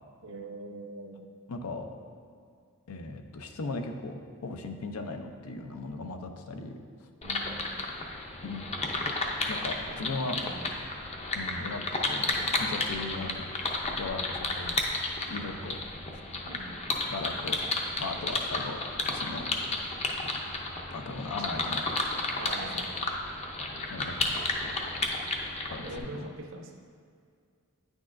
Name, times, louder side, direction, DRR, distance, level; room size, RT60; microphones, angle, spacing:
voice 1, 0.2-1.3 7.2-7.7 10.0-10.7 16.4-16.9 21.4-21.6 22.3-23.1 25.8-26.8, right 2 dB, 65° right, 4 dB, 0.6 m, -42 dB
voice 2, 1.5-1.9 2.9-6.7 7.0-7.1 8.4-8.7 9.5-10.4 11.3-14.8 15.3-15.8 17.1-17.6 18.0-18.8 19.1-19.5 20.9-22.1 23.9-24.7 25.6-26.2, left 3 dB, 85° left, 6 dB, 0.6 m, -38 dB
sound 1, 7.2-26.0, left 2 dB, 30° left, 0.6 m, -32 dB
9.3 x 6.2 x 2.5 m, 2.2 s
head